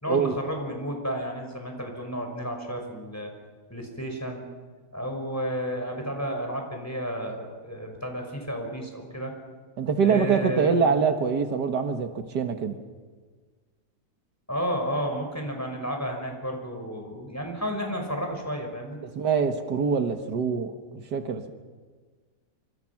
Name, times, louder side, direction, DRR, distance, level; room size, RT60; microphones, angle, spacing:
voice 1, 0.0-3.3 3.7-4.4 4.9-9.3 10.0-10.8 14.5-19.0, equal, 10° left, 2 dB, 5.6 m, -32 dB
voice 2, 9.8-12.8 19.2-21.5, right 6 dB, 80° right, 6 dB, 2.1 m, -24 dB
27.5 x 26.0 x 6.0 m, 1.5 s
omnidirectional pair, 1.8 m